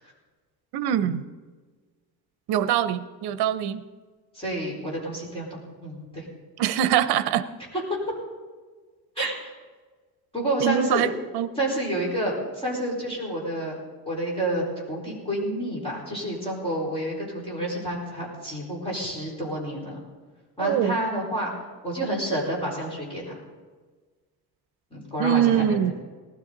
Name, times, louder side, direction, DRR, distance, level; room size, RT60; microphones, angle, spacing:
voice 1, 0.7-1.2 2.5-3.8 6.6-7.4 9.2-9.3 10.6-11.5 20.6-20.9 25.2-25.9, right 10 dB, 70° right, 12 dB, 0.8 m, -23 dB
voice 2, 4.3-6.2 7.7-7.8 9.2-9.5 10.3-11.1 11.6-13.7 14.0-20.0 20.6-21.5 21.8-23.3 24.9-25.9, right 1 dB, 15° left, -5 dB, 4.5 m, -29 dB
19.0 x 13.0 x 4.0 m, 1.4 s
cardioid pair, 175°, 39 cm